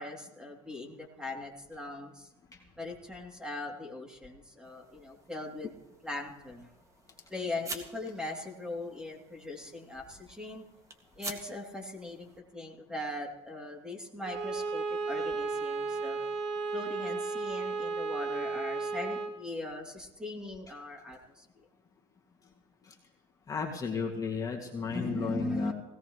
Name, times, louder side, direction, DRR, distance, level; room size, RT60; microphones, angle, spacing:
voice 1, 0.0-2.3 2.8-5.7 6.0-6.7 7.3-10.7 11.2-16.2 16.7-21.4 24.9-25.7, left 2 dB, 5° right, 1 dB, 3.0 m, -40 dB
sound 1, 4.6-12.4, right 2 dB, 20° right, 2.1 m, -48 dB
Bowed string instrument, 14.2-19.4, right 4 dB, 70° right, 1.8 m, -34 dB
voice 2, 23.5-25.7, left 5 dB, 25° left, 0 dB, 2.3 m, -34 dB
20.0 x 17.5 x 3.2 m, 0.99 s
supercardioid pair, 110°, 14 cm